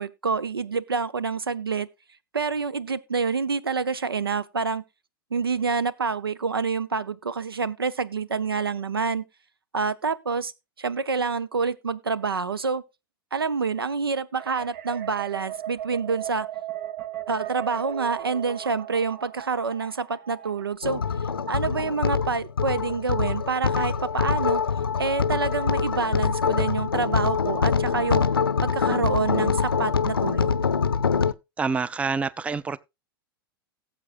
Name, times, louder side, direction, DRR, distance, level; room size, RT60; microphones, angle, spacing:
voice 1, 0.0-1.9 2.3-4.8 5.3-9.2 9.7-10.5 10.8-12.8 13.3-16.5 17.3-21.0 21.5-24.6 25.0-28.2 28.6-30.5, right 5 dB, 90° right, 0.7 m, -27 dB
sound 1, 14.4-20.8, right 12 dB, 50° right, 1.3 m, -37 dB
sound 2, 20.8-31.3, left 6 dB, 90° left, 0.6 m, -24 dB
voice 2, 31.6-32.8, right 4 dB, 10° right, 0.4 m, -27 dB
18.0 x 7.3 x 2.4 m
hypercardioid pair, 95°, 12 cm